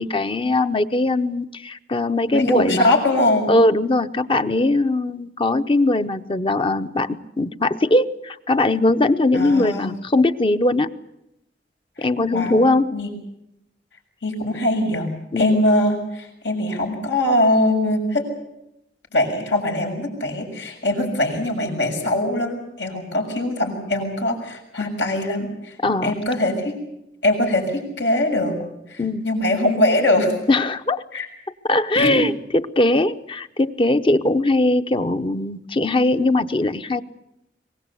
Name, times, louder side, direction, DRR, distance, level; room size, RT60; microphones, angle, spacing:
voice 1, 0.0-2.9 3.5-10.9 12.0-13.0 15.3-15.6 25.8-26.2 29.0-29.3 30.5-31.0 31.7-37.0, left 2 dB, 30° left, 11 dB, 0.8 m, -20 dB
voice 2, 2.3-3.5 9.3-9.9 12.3-12.6 12.9-13.1 14.2-15.1 15.3-18.2 19.1-25.7 26.0-26.7 27.2-28.6 28.9-30.3 31.1-31.3 31.9-32.2, left 1 dB, 85° left, 2 dB, 6.8 m, -22 dB
23.5 x 20.0 x 8.4 m, 0.84 s
head